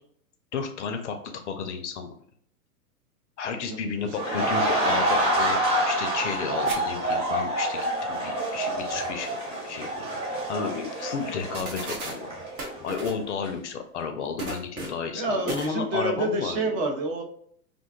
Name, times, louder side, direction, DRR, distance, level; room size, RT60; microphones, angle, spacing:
voice 1, 0.5-2.1 3.4-7.8 8.1-12.3 12.8-16.8, left 6 dB, 50° left, 6 dB, 0.4 m, -32 dB
voice 2, 3.5-3.9 4.3-4.4 15.1-17.2, right 2 dB, 40° right, 2 dB, 0.6 m, -28 dB
sound 1, 4.1-13.0 13.3-13.5, right 1 dB, 10° right, 0.9 m, -27 dB
sound 2, 6.6-6.8 7.1-7.2 9.9-10.0 10.4-10.5 11.3-11.4 11.5-12.2 12.6-13.2 14.4-15.1 15.5-15.7, right 3 dB, 65° right, 0.9 m, -35 dB
2.5 x 2.2 x 2.3 m, 0.63 s
hypercardioid pair, 115°, 47 cm